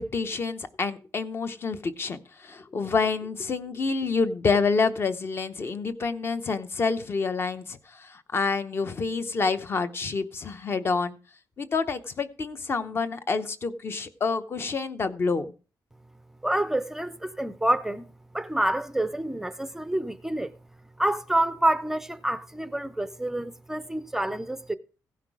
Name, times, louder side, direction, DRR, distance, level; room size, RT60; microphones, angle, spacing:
voice 1, 0.0-11.2 11.6-15.5, left 4 dB, 35° left, 0.8 m, -28 dB
voice 2, 16.4-20.5 21.0-24.8, right 1 dB, 5° right, 0.5 m, -28 dB
16.0 x 5.9 x 4.7 m
wide cardioid pair, 175°, 7 cm